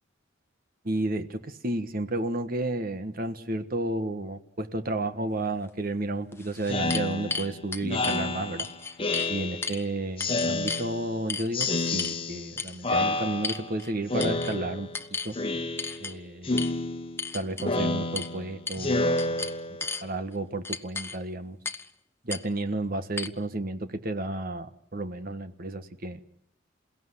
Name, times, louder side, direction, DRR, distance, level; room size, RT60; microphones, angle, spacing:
voice 1, 0.8-8.7 9.3-14.9 15.2-15.4 16.0-16.7 17.3-19.5 20.0-21.6 22.2-26.2, right 2 dB, 45° right, 10 dB, 1.4 m, -32 dB
sound 1, 5.7-5.8 6.3-8.2 8.6-9.3 9.6-9.8 10.2-10.9 11.3-12.2 12.6-12.8 13.4-13.9 14.2-14.5 14.9-15.3 15.8-16.1 16.6-16.7 17.2-17.7 18.1-18.3 18.7-18.9 19.2-20.0 20.6-21.2 21.6-21.9 22.3-22.4 23.2-23.3, left 4 dB, 10° left, 1.0 m, -34 dB
Speech synthesizer, 6.7-9.8 10.2-11.2 11.5-12.6 12.8-13.8 14.1-15.0 15.3-16.1 16.4-20.0, left 2 dB, 30° left, 1.3 m, -30 dB
28.5 x 17.0 x 9.8 m, 0.74 s
head